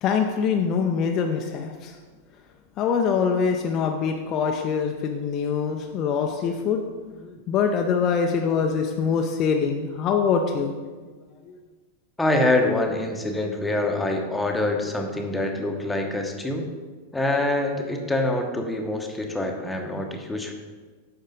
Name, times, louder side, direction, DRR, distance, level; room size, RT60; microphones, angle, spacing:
voice 1, 0.0-2.0 2.8-6.8 7.1-10.7 11.4-11.6, left 6 dB, 35° left, 3 dB, 0.6 m, -24 dB
voice 2, 12.2-16.7 17.1-20.5, left 2 dB, 5° left, 2 dB, 1.0 m, -25 dB
9.0 x 6.5 x 3.8 m, 1.4 s
figure-of-eight pair, 90°, 0 cm